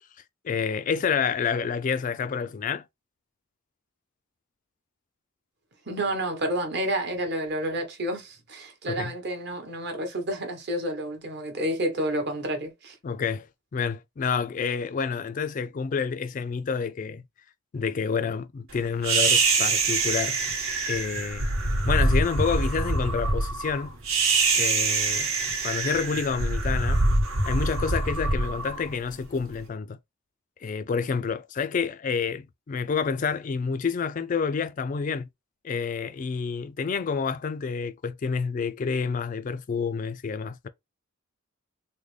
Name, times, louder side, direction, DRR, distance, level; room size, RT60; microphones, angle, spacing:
voice 1, 0.4-2.8 8.9-9.1 13.0-13.5 13.7-17.2 17.7-20.4 20.9-21.5 21.9-24.0 24.6-25.3 25.6-27.1 27.5-30.0 30.6-35.3 35.6-40.7, left 5 dB, 40° left, 0.3 m, -28 dB
voice 2, 5.9-12.9, right 1 dB, 50° right, 1.0 m, -30 dB
sound 1, 19.0-29.4, right 3 dB, 80° right, 1.1 m, -25 dB
3.8 x 2.1 x 3.1 m
head